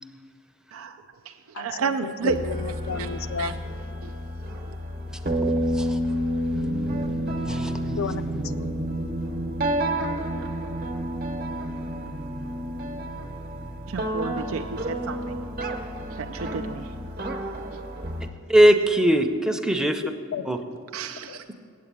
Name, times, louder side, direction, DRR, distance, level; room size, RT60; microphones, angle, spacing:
voice 1, 0.7-2.4 3.0-3.1 3.4-3.5 4.0-4.1 13.9-15.4 16.1-16.9 20.9-21.6, right 5 dB, 85° right, 6 dB, 0.4 m, -31 dB
voice 2, 1.5-3.6 7.3-7.4 8.0-8.7 20.3-20.5 21.3-21.4, left 5 dB, 80° left, 10 dB, 0.4 m, -33 dB
sound 1, 2.3-18.3, right 1 dB, 45° right, 0.9 m, -30 dB
voice 3, 18.5-20.0 20.5-20.6, right 1 dB, 5° right, 6 dB, 0.5 m, -20 dB
8.5 x 8.3 x 8.7 m, 2.6 s
head